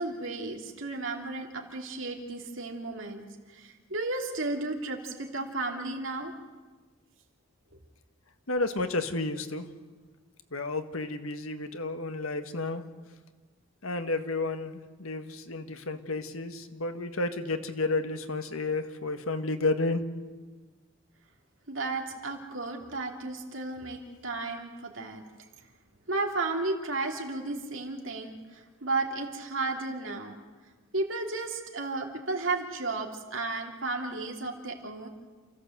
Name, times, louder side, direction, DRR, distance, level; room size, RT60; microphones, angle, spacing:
voice 1, 0.0-6.3 21.7-25.2 26.1-30.4 30.9-35.1, right 3 dB, 65° right, 2 dB, 3.0 m, -33 dB
voice 2, 8.5-9.7 10.5-12.8 13.8-20.0, left 2 dB, 80° left, 8 dB, 1.6 m, -31 dB
28.5 x 15.0 x 8.0 m, 1.4 s
head